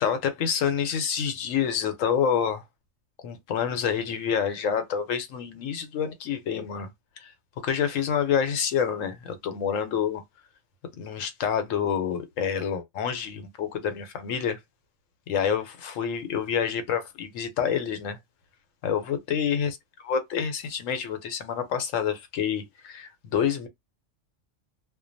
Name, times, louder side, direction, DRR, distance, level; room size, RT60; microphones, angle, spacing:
voice 1, 0.0-2.6 3.2-6.9 7.2-7.3 7.6-10.2 11.0-14.6 15.3-18.2 18.8-19.7 20.0-23.7, left 7 dB, 80° left, 1.1 m, -27 dB
2.5 x 2.2 x 2.5 m
omnidirectional pair, 1.3 m